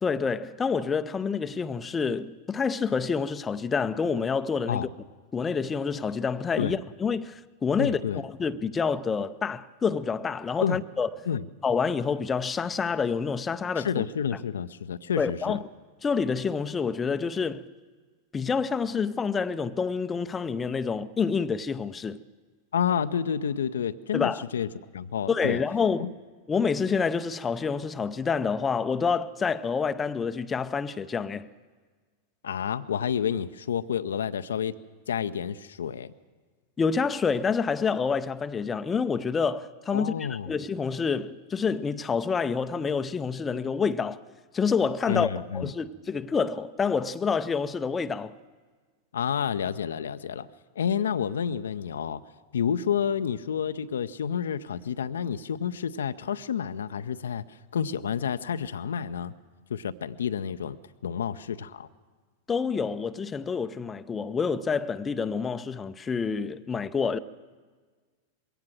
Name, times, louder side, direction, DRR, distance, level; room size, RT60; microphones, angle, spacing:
voice 1, 0.0-4.9 5.3-11.1 11.6-14.1 15.2-15.6 16.0-17.6 18.3-22.2 24.1-24.4 25.3-26.1 26.5-31.5 36.8-44.2 44.5-48.4 62.5-67.2, left 5 dB, 20° left, 0.5 m, -28 dB
voice 2, 7.8-8.2 10.6-10.8 11.3-11.4 13.7-15.6 22.7-25.6 26.0-26.1 32.4-34.7 35.1-36.1 39.9-40.5 45.1-45.7 49.1-50.5 50.8-52.2 52.5-59.3 59.7-61.9, left 8 dB, 65° left, 0.5 m, -29 dB
21.5 x 17.0 x 7.6 m
figure-of-eight pair, 90°, 0 cm